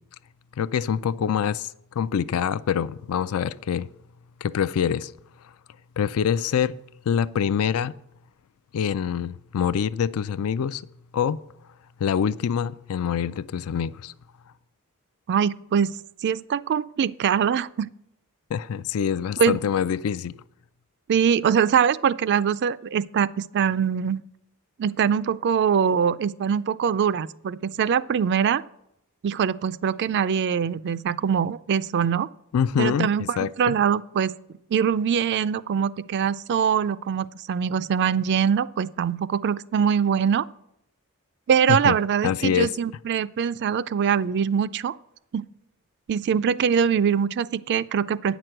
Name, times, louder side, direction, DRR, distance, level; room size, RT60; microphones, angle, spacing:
voice 1, 0.6-3.9 4.4-5.1 6.0-6.7 7.1-7.9 8.7-10.8 11.1-11.4 12.0-14.1 18.5-20.3 32.5-33.8 41.7-42.0 42.2-42.7, left 8 dB, 75° left, 17 dB, 0.4 m, -25 dB
voice 2, 15.3-15.9 16.2-17.9 19.4-19.6 21.1-24.2 24.8-28.6 29.2-32.3 32.8-34.3 34.7-40.5 41.5-44.9 45.3-45.5 46.1-48.4, right 7 dB, 50° right, 17 dB, 0.3 m, -23 dB
9.3 x 6.0 x 7.8 m, 0.81 s
head